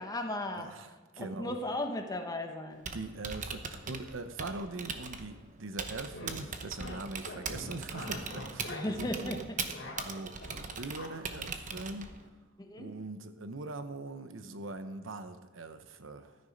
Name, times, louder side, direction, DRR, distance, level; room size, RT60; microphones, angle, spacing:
voice 1, 0.0-0.7 1.2-2.8 8.7-9.6 12.6-12.9, left 1 dB, 20° left, 4 dB, 1.2 m, -36 dB
voice 2, 0.5-1.6 2.9-9.5 10.0-12.2 12.7-16.4, right 3 dB, 80° right, 10 dB, 0.9 m, -42 dB
Typing, 2.7-12.3, right 5 dB, 40° right, 0.9 m, -41 dB
sound 1, 5.9-6.4 6.8-7.0 7.2-9.2 9.5-10.6 11.0-11.1, left 2 dB, 65° left, 2.9 m, -43 dB
13.0 x 9.7 x 5.2 m, 1.3 s
head